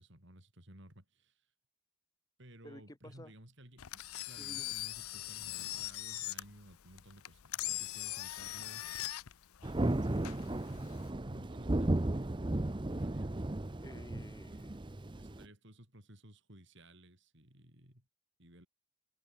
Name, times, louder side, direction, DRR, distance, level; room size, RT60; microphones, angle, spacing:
voice 1, 0.0-1.5 2.4-9.2 11.2-12.2 12.9-13.5 15.2-18.1 18.4-18.7, right 1 dB, 55° right, 7.0 m, -56 dB
voice 2, 2.6-3.3 4.4-4.7 13.8-14.8, equal, 15° left, 3.5 m, -52 dB
Engine, 3.8-11.1, left 16 dB, 90° left, 0.6 m, -41 dB
Thunder, 9.6-15.4, right 1 dB, 20° right, 0.6 m, -35 dB
head